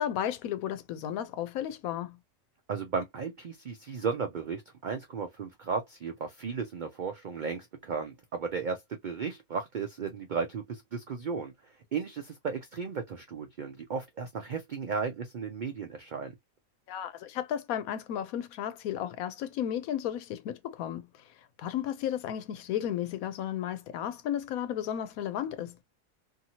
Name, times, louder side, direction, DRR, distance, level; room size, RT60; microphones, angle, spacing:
voice 1, 0.0-2.2 16.9-21.1 21.6-25.8, left 10 dB, 85° left, 1.0 m, -33 dB
voice 2, 2.7-11.5 11.9-16.3, right 5 dB, 85° right, 0.4 m, -35 dB
2.7 x 2.7 x 2.7 m
omnidirectional pair, 1.4 m